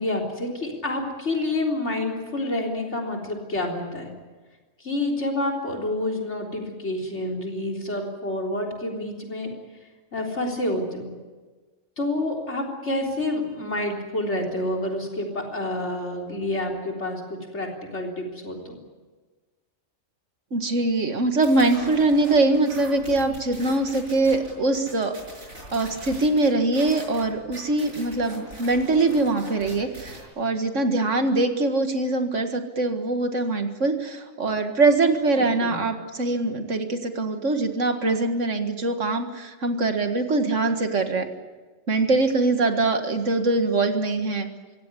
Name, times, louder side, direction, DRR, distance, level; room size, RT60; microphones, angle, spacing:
voice 1, 0.0-4.1 4.8-9.5 10.1-11.1 12.0-17.2 17.5-18.8 35.4-35.8, left 1 dB, 55° left, 0 dB, 4.1 m, -28 dB
voice 2, 20.5-25.2 25.7-41.3 41.9-44.5, right 2 dB, 65° right, 6 dB, 2.1 m, -23 dB
sound 1, 21.4-30.2, right 1 dB, 90° right, 6.7 m, -42 dB
24.5 x 16.5 x 9.9 m, 1.3 s
omnidirectional pair, 1.4 m